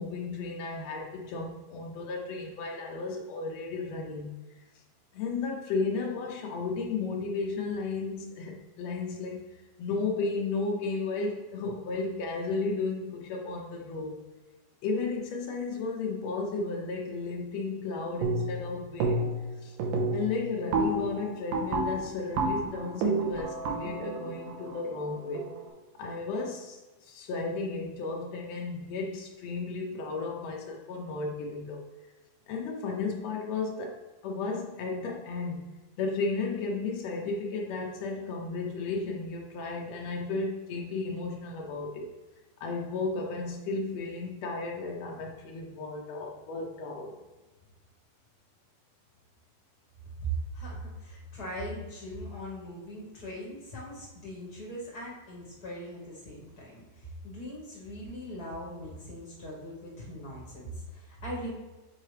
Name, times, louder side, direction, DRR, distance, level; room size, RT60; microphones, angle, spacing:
voice 1, 0.0-4.6 5.1-9.5 9.8-14.2 14.8-19.2 19.6-19.8 20.1-25.5 26.0-31.8 32.5-35.7 36.0-42.1 42.6-47.1, left 3 dB, 85° left, -1 dB, 1.4 m, -34 dB
sound 1, 18.2-18.7 19.0-19.5 19.8-25.6, right 2 dB, 80° right, 2.5 m, -30 dB
voice 2, 50.2-61.5, right 1 dB, 65° left, -5 dB, 0.9 m, -40 dB
7.5 x 4.6 x 3.2 m, 1.1 s
omnidirectional pair, 3.9 m